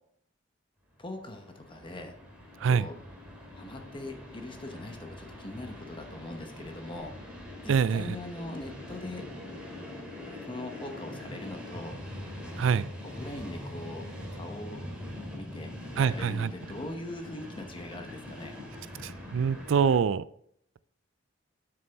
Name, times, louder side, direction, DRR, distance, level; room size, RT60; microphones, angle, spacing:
voice 1, 1.0-2.2 2.6-3.0 3.6-7.1 7.6-9.3 10.4-12.0 13.0-14.8 15.3-18.6, left 1 dB, 25° left, 5 dB, 0.9 m, -41 dB
Train, 1.0-20.0, left 1 dB, 5° right, 2.5 m, -43 dB
voice 2, 7.7-8.2 12.6-12.9 16.0-16.5 19.0-20.2, right 6 dB, 70° right, 17 dB, 0.4 m, -25 dB
8.6 x 6.8 x 3.4 m, 0.67 s
head